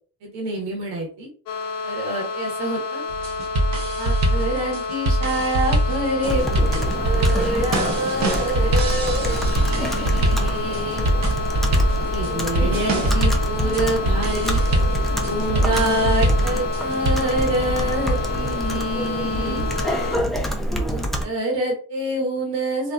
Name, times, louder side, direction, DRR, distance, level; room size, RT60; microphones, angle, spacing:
voice 1, 0.2-1.3 1.8-3.0 4.0-11.1 12.1-14.6 15.2-19.7 20.9-22.9, right 1 dB, 75° right, -1 dB, 1.1 m, -26 dB
sound 1, 1.5-20.2, left 4 dB, 55° left, 0.5 m, -30 dB
sound 2, 3.1-17.1, right 1 dB, 40° right, 0.6 m, -23 dB
Computer keyboard, 6.2-21.2, equal, ahead, 0.3 m, -26 dB
2.5 x 2.2 x 2.2 m, 0.42 s
supercardioid pair, 75°, 41 cm